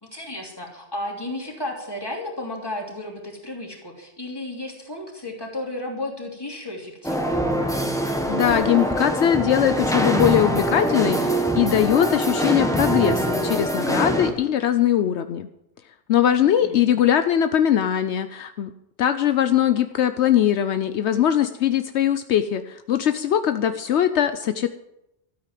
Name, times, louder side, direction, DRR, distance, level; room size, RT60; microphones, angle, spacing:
voice 1, 0.0-7.5 16.4-16.8, left 1 dB, 20° left, 0 dB, 3.0 m, -33 dB
sound 1, 7.0-14.3, right 1 dB, 5° left, 1.4 m, -23 dB
voice 2, 8.3-15.5 16.1-18.7 19.0-24.7, left 10 dB, 75° left, 10 dB, 0.9 m, -21 dB
13.0 x 8.9 x 7.5 m, 0.86 s
omnidirectional pair, 1.2 m